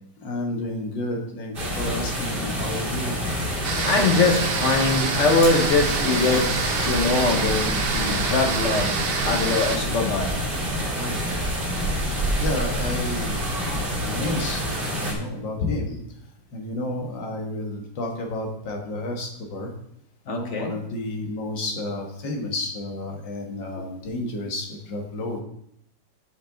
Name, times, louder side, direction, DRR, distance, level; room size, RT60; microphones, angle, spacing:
voice 1, 0.2-3.6 9.7-9.9 10.9-11.3 12.4-13.4 14.0-14.6 14.9-16.0 16.5-19.7 20.3-25.4, left 2 dB, 85° left, 2 dB, 2.1 m, -31 dB
sound 1, 1.5-15.1, equal, 30° right, 1.8 m, -27 dB
sound 2, 3.6-9.8, right 5 dB, 65° right, 0.5 m, -27 dB
voice 2, 3.8-6.5 6.8-9.0 9.2-10.3 20.3-20.7, left 3 dB, 50° left, 3 dB, 1.1 m, -22 dB
sound 3, 5.4-7.1 7.4-7.5 10.9-11.0 11.7-11.8 12.1-12.7 14.7-14.8 15.1-15.2, left 1 dB, 70° left, 3.1 m, -35 dB
7.5 x 6.1 x 3.8 m, 0.72 s
omnidirectional pair, 2.0 m